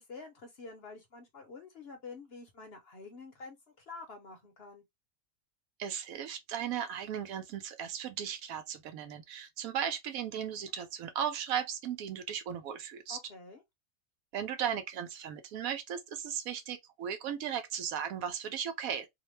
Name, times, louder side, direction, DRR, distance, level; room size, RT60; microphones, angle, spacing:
voice 1, 0.0-4.8 13.1-13.6, left 4 dB, 55° left, 0.8 m, -48 dB
voice 2, 5.8-13.2 14.3-19.1, right 8 dB, 75° right, 1.0 m, -36 dB
2.8 x 2.1 x 3.0 m
omnidirectional pair, 1.5 m